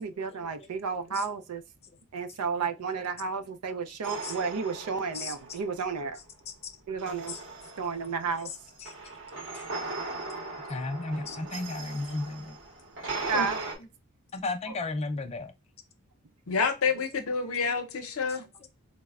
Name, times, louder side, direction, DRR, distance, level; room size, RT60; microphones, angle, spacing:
voice 1, 0.0-1.6 2.1-6.2 6.9-7.4 7.8-8.5 13.1-13.6 14.7-14.8, right 5 dB, 85° right, 0.5 m, -32 dB
sound 1, 4.0-6.0 7.0-13.8, right 3 dB, 55° right, 0.8 m, -39 dB
voice 2, 10.7-12.6 14.3-15.5, left 2 dB, 30° left, 0.4 m, -34 dB
voice 3, 16.5-18.4, left 5 dB, 65° left, 0.6 m, -28 dB
4.0 x 2.0 x 2.3 m
head